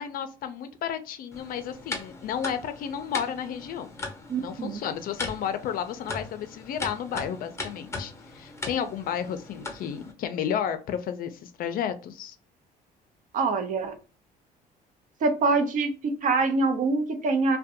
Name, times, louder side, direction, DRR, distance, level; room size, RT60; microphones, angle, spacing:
voice 1, 0.0-3.9 4.4-12.4, left 8 dB, 60° left, 10 dB, 0.4 m, -32 dB
sound 1, 1.3-10.1, left 2 dB, 15° left, 0.7 m, -39 dB
voice 2, 4.3-4.8 13.3-14.0 15.2-17.6, right 3 dB, 50° right, 6 dB, 0.6 m, -25 dB
2.5 x 2.1 x 2.7 m, 0.35 s
cardioid pair, 110°, 17 cm